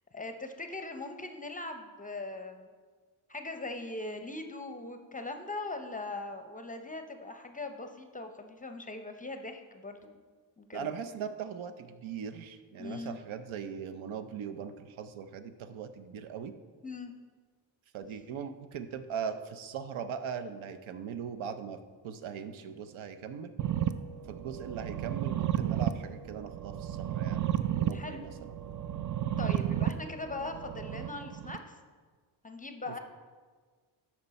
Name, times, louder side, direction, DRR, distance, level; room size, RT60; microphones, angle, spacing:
voice 1, 0.1-2.7 3.3-10.1 10.6-10.9 12.8-13.2 16.8-17.1 27.9-28.2 29.4-31.7 32.4-33.0, left 2 dB, 15° left, 6 dB, 0.6 m, -40 dB
voice 2, 10.7-16.5 17.9-21.8 22.0-23.5 24.3-28.3, right 7 dB, 75° right, 9 dB, 0.7 m, -40 dB
sound 1, 23.6-31.6, right 11 dB, 40° right, 0.4 m, -33 dB
12.5 x 4.4 x 4.1 m, 1.5 s
cardioid pair, 100°, 48 cm